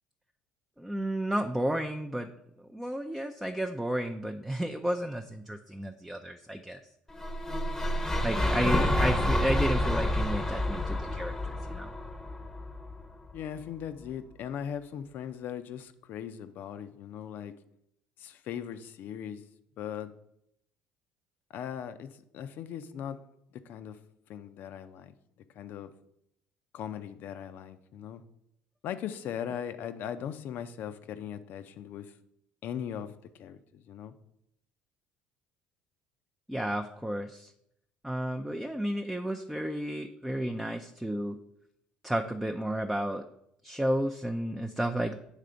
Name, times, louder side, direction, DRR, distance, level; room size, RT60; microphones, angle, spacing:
voice 1, 0.8-2.3 2.7-6.8 8.2-11.9 36.5-37.5 38.0-41.4 42.0-43.2 43.6-45.2, right 1 dB, 5° right, 4 dB, 0.5 m, -32 dB
sound 1, 7.1-13.3, left 1 dB, 10° left, 0.8 m, -29 dB
voice 2, 13.3-17.5 18.2-19.4 19.8-20.1 21.5-23.2 23.5-24.0 24.3-25.1 25.5-25.9 26.7-28.2 28.8-32.1 32.6-34.1, left 9 dB, 60° left, 11 dB, 0.6 m, -39 dB
8.1 x 3.3 x 5.0 m, 0.77 s
supercardioid pair, 85°, 4 cm